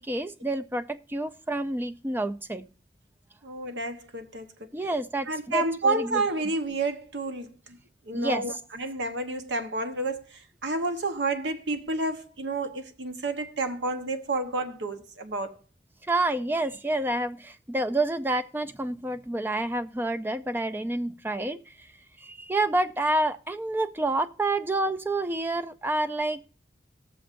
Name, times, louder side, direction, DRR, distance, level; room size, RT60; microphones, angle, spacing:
voice 1, 0.0-2.7 4.7-6.2 8.1-8.6 16.0-21.9 22.2-26.5, right 2 dB, 10° right, 0.3 m, -28 dB
voice 2, 3.4-4.7 5.3-7.5 8.1-15.6, right 2 dB, 90° right, 1.0 m, -30 dB
19.5 x 6.9 x 2.5 m
head